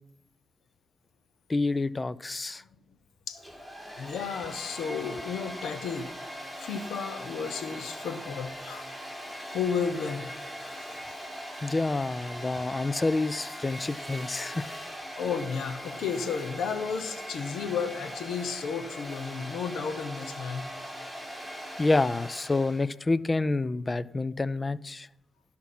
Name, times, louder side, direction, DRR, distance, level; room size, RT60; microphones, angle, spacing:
voice 1, 1.5-2.6 11.6-14.8 21.8-25.1, left 3 dB, 35° left, 20 dB, 0.5 m, -28 dB
Domestic sounds home sounds, 3.3-22.9, equal, 5° left, 4.9 m, -40 dB
voice 2, 4.0-6.1 6.6-8.9 9.5-10.3 15.2-20.7, left 6 dB, 80° left, 12 dB, 1.0 m, -33 dB
12.5 x 5.8 x 6.0 m, 0.81 s
supercardioid pair, 50°, 0 cm